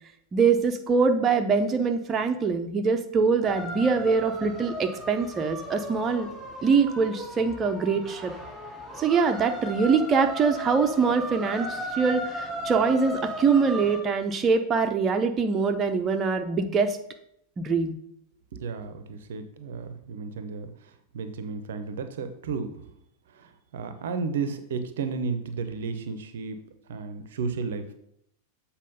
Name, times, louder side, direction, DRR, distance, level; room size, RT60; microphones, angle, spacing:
voice 1, 0.3-6.3 6.6-8.3 9.0-17.0 17.6-18.0, right 5 dB, 25° right, 5 dB, 0.7 m, -23 dB
sound 1, 3.4-14.0, equal, 5° right, 2.9 m, -36 dB
voice 2, 18.5-20.7 21.1-22.8 23.3-26.6 26.9-27.9, right 5 dB, 60° right, 10 dB, 0.7 m, -33 dB
7.5 x 4.3 x 5.3 m, 0.73 s
figure-of-eight pair, 90°, 0 cm